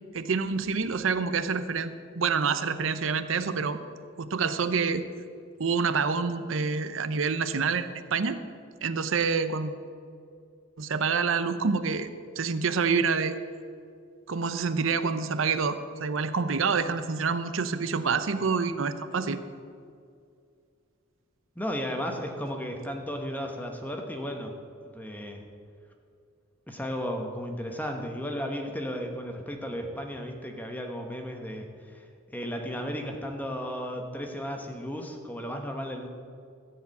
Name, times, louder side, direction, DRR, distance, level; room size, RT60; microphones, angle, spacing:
voice 1, 0.1-3.8 4.2-5.0 5.6-8.4 8.8-9.7 10.8-12.1 12.4-13.4 14.3-19.4, right 5 dB, 75° right, 11 dB, 0.6 m, -27 dB
voice 2, 21.6-24.5 24.9-25.4 26.7-32.0 32.3-36.1, equal, 10° left, 3 dB, 1.1 m, -34 dB
14.5 x 4.8 x 8.4 m, 2.3 s
head